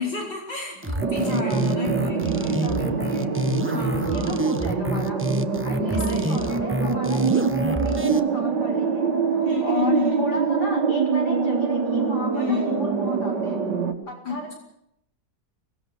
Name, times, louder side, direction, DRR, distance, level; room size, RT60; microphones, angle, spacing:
voice 1, 0.0-3.3 3.7-4.4 5.9-6.6 9.4-10.2 12.3-12.7 14.3-14.5, left 5 dB, 85° left, 0 dB, 5.6 m, -31 dB
sound 1, 0.8-8.2, right 1 dB, 10° right, 0.8 m, -27 dB
sound 2, 1.0-13.9, right 5 dB, 85° right, 2.8 m, -24 dB
voice 2, 1.2-1.7 2.6-3.3 4.1-5.2 5.6-13.6 14.1-14.5, equal, 65° left, 1 dB, 6.8 m, -35 dB
24.0 x 19.0 x 6.8 m, 0.75 s
omnidirectional pair, 1.9 m